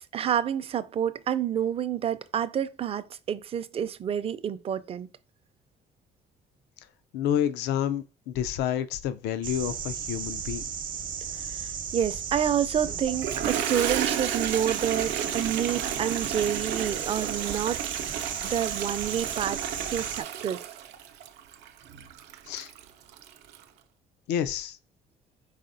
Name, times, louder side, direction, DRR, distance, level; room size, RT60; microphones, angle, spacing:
voice 1, 0.0-5.1 11.3-17.8 18.4-19.6 19.9-20.6, right 9 dB, 35° right, 0.4 m, -29 dB
voice 2, 7.1-10.6 22.5-22.7 24.3-24.8, left 10 dB, 85° left, 0.4 m, -29 dB
sound 1, 9.4-20.2, right 7 dB, 55° right, 0.8 m, -35 dB
Toilet flush, 13.1-23.6, right 10 dB, 85° right, 0.6 m, -33 dB
4.9 x 4.1 x 2.6 m
cardioid pair, 110°, 17 cm